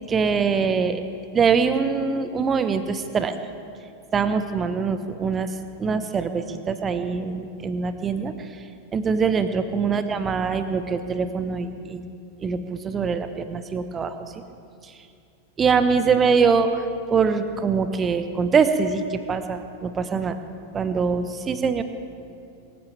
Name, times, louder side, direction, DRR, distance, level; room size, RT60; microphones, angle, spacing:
voice 1, 0.1-1.0 1.3-3.3 4.1-5.5 5.8-8.3 8.9-12.0 12.4-14.1 15.6-16.8 17.1-20.4 20.7-21.8, right 5 dB, 20° right, 10 dB, 1.1 m, -23 dB
26.0 x 15.0 x 3.5 m, 2.5 s
figure-of-eight pair, 90°, 0 cm